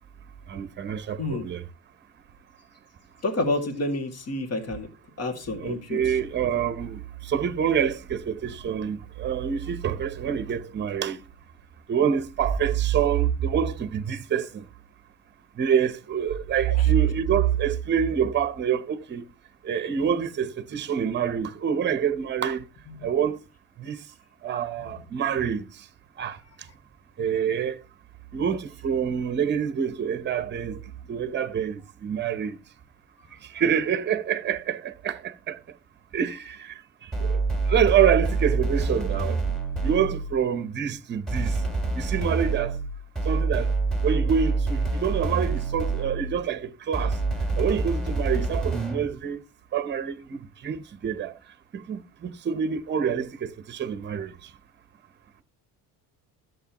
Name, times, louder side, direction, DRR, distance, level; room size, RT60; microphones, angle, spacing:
voice 1, 0.5-1.6 5.6-11.2 11.9-14.6 15.6-19.2 19.6-22.6 23.0-23.4 23.8-24.0 24.4-25.6 26.2-26.4 27.2-27.8 28.3-30.8 31.1-32.6 33.5-35.6 36.1-36.7 37.0-37.4 37.7-39.4 39.8-41.6 41.9-42.7 43.2-43.7 44.0-47.2 47.6-49.4 49.7-51.3 51.7-54.4, right 8 dB, 30° right, 0.9 m, -26 dB
voice 2, 3.2-4.9 5.2-6.0 16.7-16.9, left 2 dB, 40° left, 2.2 m, -29 dB
sound 1, 37.1-40.4 41.3-46.4 46.9-49.1, right 3 dB, ahead, 2.2 m, -26 dB
13.5 x 7.7 x 3.0 m
cardioid pair, 155°, 37 cm